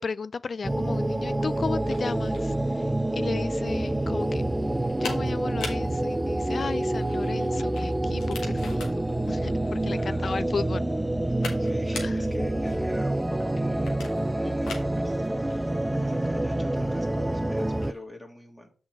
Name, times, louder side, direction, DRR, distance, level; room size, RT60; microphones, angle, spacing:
voice 1, 0.0-2.9 3.1-4.4 5.0-8.9 9.3-10.8 12.0-12.1, left 4 dB, 55° left, 0.3 m, -34 dB
sound 1, 0.6-17.9, right 1 dB, 15° right, 0.5 m, -27 dB
sound 2, 0.7-18.0, left 4 dB, 85° left, 1.5 m, -44 dB
voice 2, 9.9-10.7 11.6-14.1 14.3-15.6 16.0-18.7, left 1 dB, 15° left, 2.2 m, -44 dB
6.3 x 3.9 x 6.2 m
supercardioid pair, 40°, 0 cm